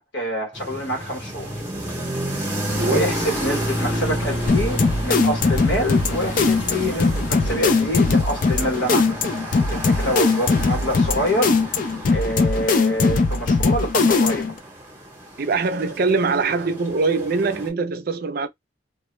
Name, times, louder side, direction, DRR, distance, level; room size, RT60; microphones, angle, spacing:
voice 1, 0.1-1.5 2.8-9.4 9.7-11.8 12.1-14.5, equal, 75° left, 1.1 m, -26 dB
sound 1, 0.5-17.7, equal, 10° right, 0.8 m, -31 dB
sound 2, 2.7-7.9, left 1 dB, 90° left, 0.7 m, -34 dB
voice 2, 2.8-3.1 15.4-18.5, right 4 dB, 55° right, 0.4 m, -22 dB
sound 3, 4.5-14.6, left 4 dB, 45° left, 0.4 m, -20 dB
2.2 x 2.1 x 3.0 m
head